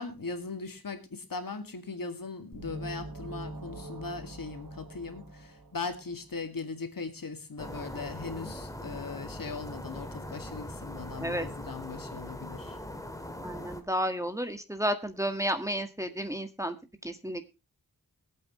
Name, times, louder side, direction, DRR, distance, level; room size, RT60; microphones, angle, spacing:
voice 1, 0.0-12.8, left 4 dB, 70° left, 7 dB, 2.2 m, -39 dB
sound 1, 2.5-6.3, right 1 dB, 65° right, 4.1 m, -43 dB
sound 2, 7.6-13.8, left 1 dB, 10° left, 2.1 m, -41 dB
voice 2, 13.4-16.7 17.0-17.4, equal, 10° right, 8 dB, 1.7 m, -32 dB
22.5 x 8.5 x 3.1 m, 0.29 s
wide cardioid pair, 85°, 35 cm